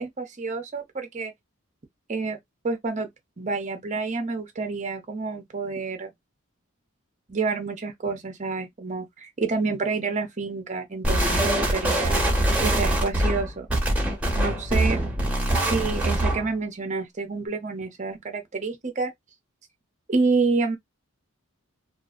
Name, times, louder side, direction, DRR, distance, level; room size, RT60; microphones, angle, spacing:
voice 1, 0.0-1.3 2.1-2.4 2.6-3.1 3.4-6.1 7.3-12.2 12.6-13.7 14.4-15.0 15.6-19.1 20.1-20.8, right 4 dB, 35° right, 0.6 m, -28 dB
sound 1, 11.0-16.5, right 1 dB, 5° right, 0.9 m, -23 dB
2.6 x 2.4 x 2.4 m
head